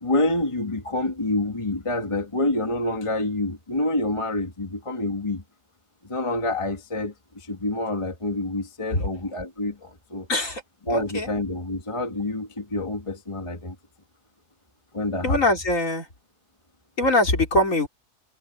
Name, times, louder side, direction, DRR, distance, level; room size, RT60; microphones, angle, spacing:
voice 1, 0.0-5.4 6.0-10.3 10.9-13.7 14.9-15.4, left 2 dB, 20° left, 1.6 m, -27 dB
voice 2, 10.3-10.6 10.9-11.3 15.2-16.1 17.0-17.9, left 1 dB, 55° left, 4.4 m, -22 dB
omnidirectional pair, 1.6 m